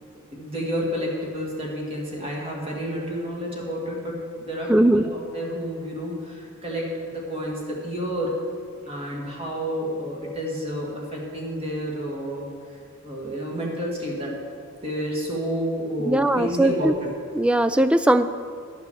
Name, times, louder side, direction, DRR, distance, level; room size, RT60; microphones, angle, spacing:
voice 1, 0.3-8.3 8.9-12.5 13.0-14.3 14.8-17.1, equal, 25° right, -3 dB, 2.1 m, -30 dB
voice 2, 4.7-5.1 16.0-16.9 17.3-18.3, right 1 dB, 5° right, 11 dB, 0.3 m, -19 dB
11.5 x 6.7 x 7.0 m, 2.2 s
head